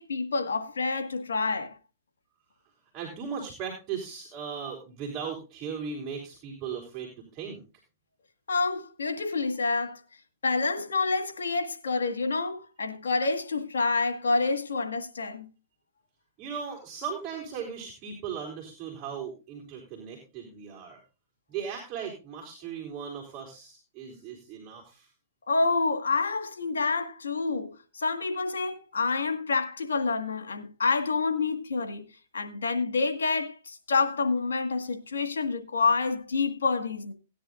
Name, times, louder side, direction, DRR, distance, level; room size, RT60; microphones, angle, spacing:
voice 1, 0.0-1.8 8.5-10.0 10.4-15.5 25.5-32.0 32.3-37.1, left 4 dB, 85° left, 1.9 m, -28 dB
voice 2, 2.9-7.6 16.4-21.0 21.5-25.1, right 6 dB, 35° right, 3.5 m, -37 dB
17.5 x 10.0 x 2.5 m
hypercardioid pair, 130°, 0 cm